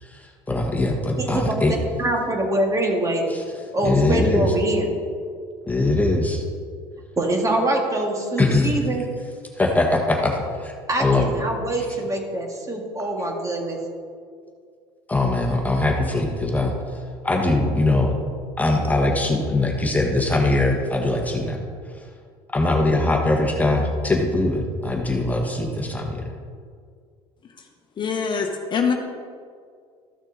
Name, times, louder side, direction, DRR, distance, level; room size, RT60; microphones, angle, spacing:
voice 1, 0.0-1.7 3.3-3.4 3.8-4.5 5.6-6.4 8.4-8.7 9.6-10.7 11.0-11.3 15.1-16.7 17.2-18.1 18.6-21.6 22.5-26.3, left 2 dB, 10° left, 1 dB, 1.5 m, -21 dB
voice 2, 1.2-1.6 2.0-3.3 3.7-4.9 7.2-9.0 10.9-13.8, right 1 dB, 25° right, 1 dB, 2.0 m, -24 dB
voice 3, 28.0-28.9, left 6 dB, 40° left, 3 dB, 1.1 m, -23 dB
14.0 x 6.2 x 4.0 m, 2.1 s
supercardioid pair, 85°, 13 cm